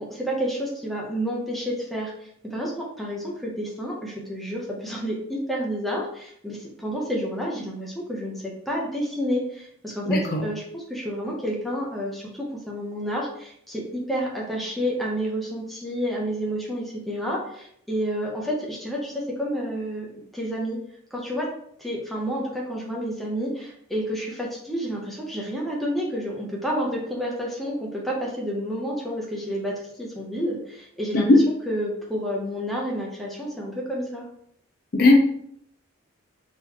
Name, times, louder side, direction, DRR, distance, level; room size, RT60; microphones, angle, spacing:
voice 1, 0.0-20.8 21.1-21.5 21.8-31.3 31.7-34.2, equal, ahead, -3 dB, 0.7 m, -30 dB
voice 2, 10.0-10.4 31.1-31.4 34.9-35.2, left 2 dB, 45° left, 1 dB, 0.5 m, -17 dB
3.9 x 3.0 x 2.8 m, 0.69 s
head